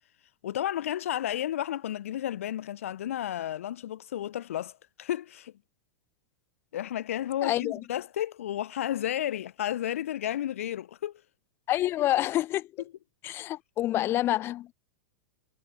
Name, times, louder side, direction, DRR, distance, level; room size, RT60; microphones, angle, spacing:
voice 1, 0.4-5.5 6.7-11.2, left 11 dB, 65° left, 0.7 m, -32 dB
voice 2, 7.4-7.8 11.7-12.7 13.2-14.7, left 14 dB, 30° left, 0.3 m, -27 dB
figure-of-eight pair, 95°, 8 cm